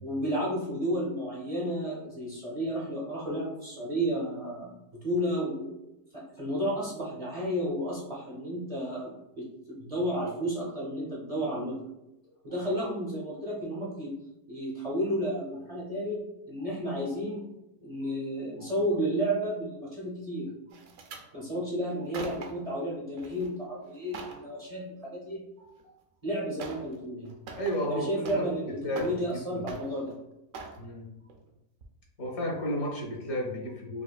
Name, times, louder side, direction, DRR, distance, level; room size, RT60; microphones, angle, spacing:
voice 1, 0.0-4.7 5.0-5.8 6.1-11.8 12.4-14.1 14.5-17.4 17.8-20.5 21.3-25.4 26.2-27.3 27.9-30.1, equal, 45° right, -5 dB, 0.5 m, -32 dB
sound 1, 20.7-21.3 21.9-22.7 23.2-23.5 23.8-24.4 25.8-25.9 26.6-26.9 27.2-28.6 28.9-29.4 29.7-30.1 30.5-30.8 31.3-31.5 31.8-31.9, right 4 dB, 70° right, 0.8 m, -43 dB
voice 2, 27.6-29.1 29.5-29.6 30.8-31.1 32.2-34.0, equal, 65° left, -2 dB, 1.3 m, -32 dB
4.9 x 2.4 x 2.2 m, 0.91 s
omnidirectional pair, 1.8 m